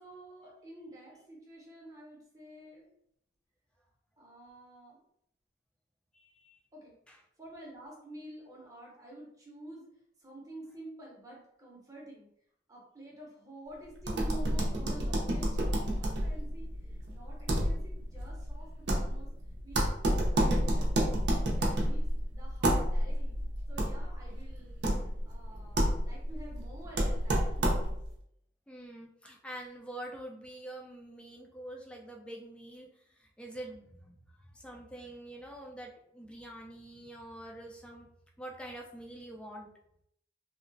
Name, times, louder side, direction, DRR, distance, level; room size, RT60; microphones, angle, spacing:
voice 1, 0.0-3.0 4.2-5.0 6.7-6.9 7.4-9.9 10.2-12.3 12.7-19.3 19.6-21.2 21.5-22.0 22.3-27.7, right 1 dB, 20° right, -3 dB, 0.7 m, -49 dB
voice 2, 6.1-6.6 7.1-7.2 28.7-38.1 38.4-39.7, right 1 dB, 5° left, -1 dB, 0.4 m, -46 dB
sound 1, 14.0-28.1, equal, 75° right, 0.6 m, -30 dB
2.8 x 2.1 x 2.6 m, 0.73 s
head